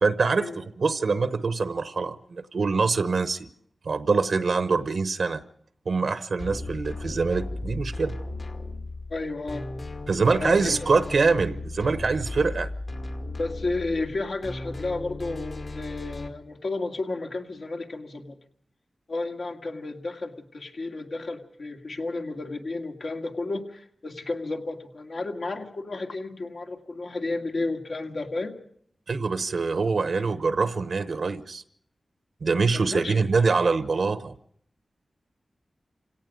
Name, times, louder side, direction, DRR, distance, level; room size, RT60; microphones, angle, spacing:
voice 1, 0.0-3.5 3.9-5.4 5.9-8.2 10.1-12.7 29.1-31.6 32.4-34.3, right 4 dB, 75° right, 11 dB, 0.9 m, -24 dB
sound 1, 6.4-16.3, left 2 dB, 55° left, 2.2 m, -36 dB
voice 2, 9.1-9.7 10.4-10.9 13.3-18.4 19.1-28.6 32.7-33.2, left 2 dB, 70° left, 3 dB, 2.1 m, -32 dB
28.5 x 17.5 x 5.3 m, 0.63 s
wide cardioid pair, 65°, 0 cm